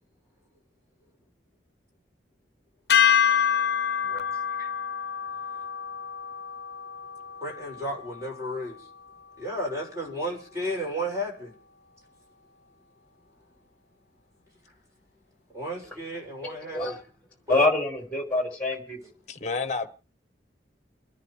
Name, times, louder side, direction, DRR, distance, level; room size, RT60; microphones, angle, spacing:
sound 1, 2.9-9.2, left 8 dB, 65° left, 0.7 m, -27 dB
voice 1, 7.4-8.8 9.4-11.5 15.5-17.0 17.5-17.6, equal, 20° right, 6.1 m, -33 dB
voice 2, 16.4-17.0 17.5-19.0, left 2 dB, 10° left, 4.1 m, -26 dB
voice 3, 19.3-19.9, left 4 dB, 40° left, 1.1 m, -31 dB
29.5 x 10.5 x 3.2 m
head